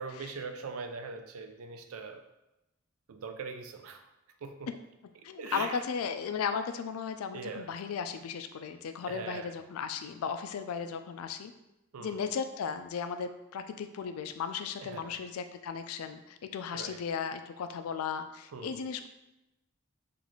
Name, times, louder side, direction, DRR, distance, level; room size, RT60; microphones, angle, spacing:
voice 1, 0.0-2.2 3.1-4.0 4.4-4.7 5.4-5.8 7.3-7.7 9.1-9.5 11.9-12.2 14.8-15.1 16.7-17.0 18.5-18.8, right 4 dB, 80° right, 7 dB, 0.4 m, -41 dB
voice 2, 5.2-11.5 12.0-19.1, left 6 dB, 90° left, 9 dB, 0.3 m, -36 dB
3.9 x 2.5 x 3.0 m, 0.93 s
head